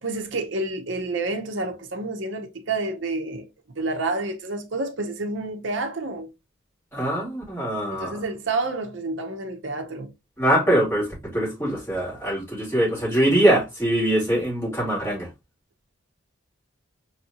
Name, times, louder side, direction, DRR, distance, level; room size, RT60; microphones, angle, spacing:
voice 1, 0.0-3.5 3.8-6.3 7.9-10.1, right 2 dB, 60° right, 0.8 m, -29 dB
voice 2, 6.9-8.2 10.4-15.3, right 1 dB, 10° left, 2.9 m, -23 dB
4.2 x 3.2 x 2.8 m
head